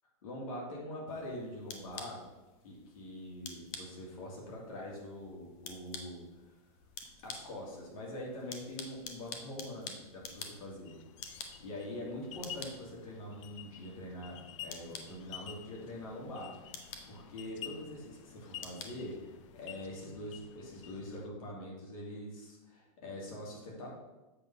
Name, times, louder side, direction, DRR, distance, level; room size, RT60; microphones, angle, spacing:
voice 1, 0.2-2.2 2.6-6.5 7.2-11.0 11.6-14.4 14.6-23.9, left 1 dB, 75° left, -3 dB, 2.6 m, -44 dB
sound 1, 1.1-19.8, left 5 dB, 40° left, 0.9 m, -50 dB
sound 2, 10.9-21.3, left 10 dB, 55° left, 0.6 m, -50 dB
7.6 x 3.9 x 5.6 m, 1.1 s
supercardioid pair, 155°, 18 cm